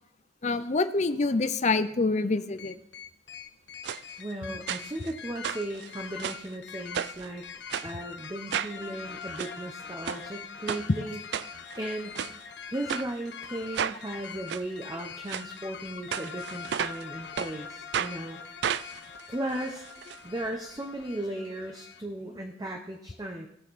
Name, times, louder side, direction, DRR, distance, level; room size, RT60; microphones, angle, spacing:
voice 1, 0.4-2.8, left 3 dB, 40° left, 11 dB, 0.6 m, -26 dB
sound 1, 2.6-22.0, left 6 dB, 70° left, 0.9 m, -43 dB
sound 2, 3.8-4.0 4.7-5.1 5.4-6.5 6.9-7.3 7.7-7.9 8.5-8.8 9.2-9.5 10.0-10.2 10.7-10.8 11.3-11.8 12.1-12.3 12.9-13.1 13.7-14.0 14.5-14.6 15.3-15.5 16.1-17.0 17.4-17.5 17.9-18.1 18.6-20.2 20.4-20.5 20.8-20.9, right 8 dB, 65° right, 0.3 m, -32 dB
voice 2, 4.2-7.4 7.8-12.2 12.7-18.4 19.3-19.8 20.2-23.5, right 1 dB, 20° right, 3 dB, 0.8 m, -36 dB
17.5 x 6.5 x 4.1 m, 0.80 s
head